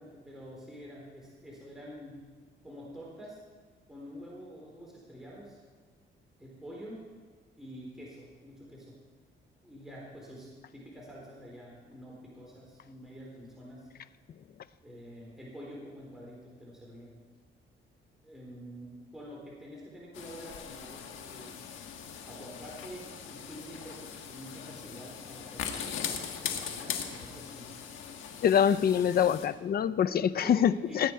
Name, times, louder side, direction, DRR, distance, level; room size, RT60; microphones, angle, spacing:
voice 1, 0.0-2.2 2.6-3.4 3.9-5.6 6.4-7.1 7.6-9.0 9.6-13.9 14.8-17.1 18.2-21.6 22.3-27.7 30.0-31.1, equal, ahead, -5 dB, 4.1 m, -47 dB
sound 1, 20.1-29.5, left 7 dB, 80° left, 1.4 m, -40 dB
voice 2, 28.4-31.1, left 8 dB, 50° left, 15 dB, 0.6 m, -25 dB
19.0 x 8.9 x 4.7 m, 1.5 s
cardioid pair, 90°, 20 cm